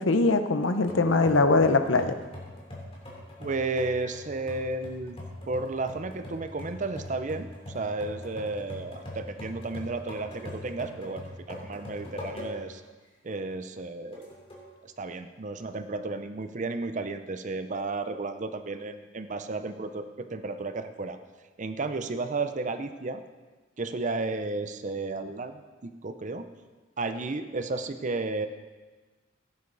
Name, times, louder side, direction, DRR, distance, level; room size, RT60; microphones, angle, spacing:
voice 1, 0.0-2.2, left 3 dB, 85° left, 8 dB, 0.8 m, -22 dB
sound 1, 0.9-12.8 13.3-13.4 14.1-14.7, left 1 dB, 30° left, 3.1 m, -42 dB
voice 2, 3.4-5.2 5.5-12.8 13.2-14.3 14.8-21.2 21.6-23.2 23.8-26.5 27.0-28.5, right 3 dB, 40° right, 9 dB, 0.6 m, -33 dB
16.0 x 9.5 x 4.0 m, 1.3 s
head